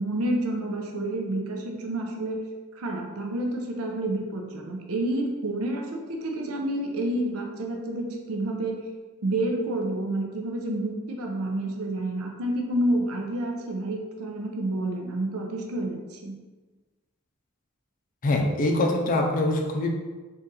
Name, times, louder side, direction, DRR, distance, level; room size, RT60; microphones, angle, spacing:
voice 1, 0.0-2.4 2.7-8.8 9.2-16.3, right 1 dB, 80° right, 1 dB, 0.5 m, -29 dB
voice 2, 18.2-19.9, left 2 dB, 40° left, 1 dB, 0.5 m, -24 dB
3.8 x 2.4 x 4.0 m, 1.3 s
head